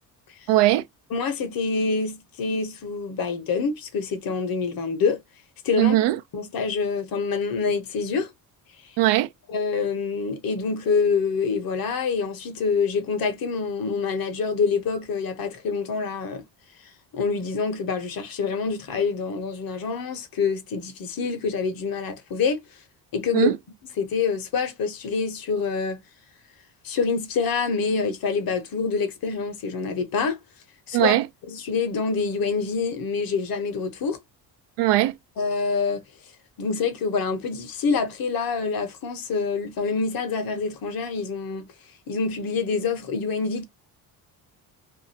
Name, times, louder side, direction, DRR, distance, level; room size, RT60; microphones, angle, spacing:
voice 1, 0.5-0.8 5.8-6.2 9.0-9.3 23.3-23.5 30.9-31.3 34.8-35.1, right 15 dB, 85° right, 0.6 m, -19 dB
voice 2, 1.1-5.2 5.6-6.0 6.3-8.3 9.5-16.4 17.1-22.6 23.1-23.5 24.0-26.0 26.8-30.4 30.9-31.2 31.5-34.2 35.4-36.0 36.6-41.7 42.1-43.6, left 5 dB, 55° left, 1.0 m, -26 dB
2.6 x 2.3 x 2.8 m
cardioid pair, 95°, 41 cm